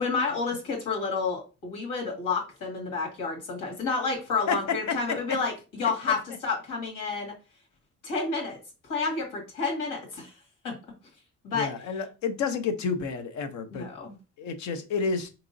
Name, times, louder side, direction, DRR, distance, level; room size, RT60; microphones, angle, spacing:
voice 1, 0.0-7.3 8.0-8.6 8.8-10.3 10.6-10.7 11.4-11.7 13.7-14.2, left 4 dB, 80° left, 1.8 m, -30 dB
voice 2, 11.5-13.9 14.4-15.3, left 5 dB, 60° left, 0.7 m, -30 dB
4.7 x 2.9 x 2.6 m
cardioid pair, 175°, 32 cm